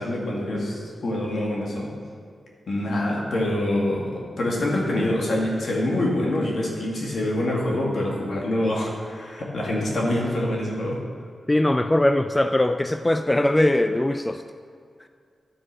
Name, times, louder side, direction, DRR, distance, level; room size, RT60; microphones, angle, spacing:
voice 1, 0.0-1.9 2.7-11.0, left 1 dB, 70° left, -3 dB, 2.1 m, -25 dB
voice 2, 11.5-14.4, left 1 dB, 20° left, 8 dB, 0.4 m, -21 dB
11.0 x 5.0 x 6.6 m, 2.1 s
cardioid pair, 55°, 0 cm